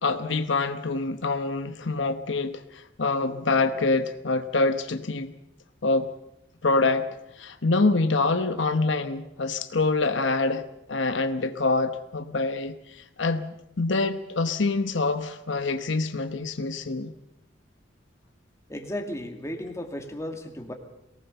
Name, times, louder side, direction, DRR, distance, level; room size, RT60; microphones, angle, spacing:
voice 1, 0.0-5.3 5.8-6.1 6.6-7.1 7.4-10.6 10.9-13.5 13.8-17.1, left 3 dB, 75° left, 9 dB, 1.0 m, -25 dB
voice 2, 18.7-20.7, left 1 dB, 15° left, 3 dB, 2.3 m, -34 dB
23.0 x 18.5 x 6.9 m, 0.85 s
head